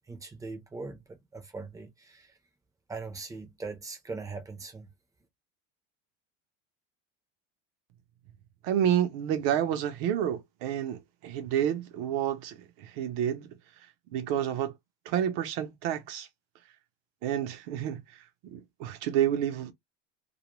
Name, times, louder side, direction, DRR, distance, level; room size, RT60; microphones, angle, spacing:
voice 1, 0.1-1.0 1.3-2.3 2.9-4.9, right 4 dB, 10° right, 0.5 m, -40 dB
voice 2, 8.6-13.5 14.1-14.7 15.1-16.3 17.2-18.0 18.4-19.7, right 10 dB, 60° right, 0.7 m, -29 dB
2.4 x 2.0 x 3.0 m
cardioid pair, 145°, 37 cm